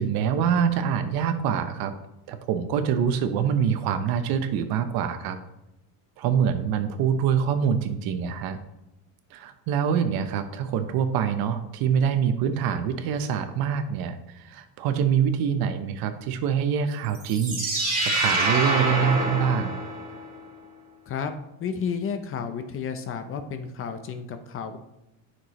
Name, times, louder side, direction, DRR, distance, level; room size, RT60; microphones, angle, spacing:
voice 1, 0.0-1.9 2.3-5.4 6.2-8.6 9.3-17.6 18.0-19.7, right 7 dB, 55° right, 9 dB, 0.9 m, -25 dB
sound 1, 17.1-20.3, right 2 dB, 20° right, 2.5 m, -26 dB
voice 2, 21.6-24.8, left 6 dB, 30° left, 8 dB, 0.6 m, -31 dB
9.4 x 6.1 x 3.1 m, 0.89 s
cardioid pair, 135°, 42 cm